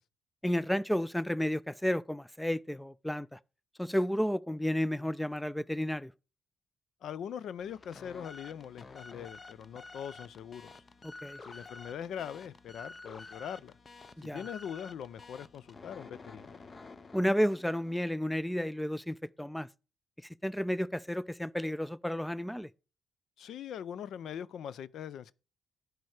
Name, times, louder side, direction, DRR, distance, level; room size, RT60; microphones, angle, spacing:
voice 1, 0.4-3.4 3.8-6.1 11.0-11.4 14.2-14.4 17.1-19.7 20.4-22.7, equal, 5° left, 0.3 m, -32 dB
voice 2, 7.0-10.8 11.4-13.8 14.3-16.6 23.4-25.3, left 8 dB, 70° left, 0.4 m, -42 dB
sound 1, 7.6-18.2, left 3 dB, 30° left, 0.7 m, -50 dB
10.5 x 4.7 x 4.8 m
cardioid pair, 90°, 0 cm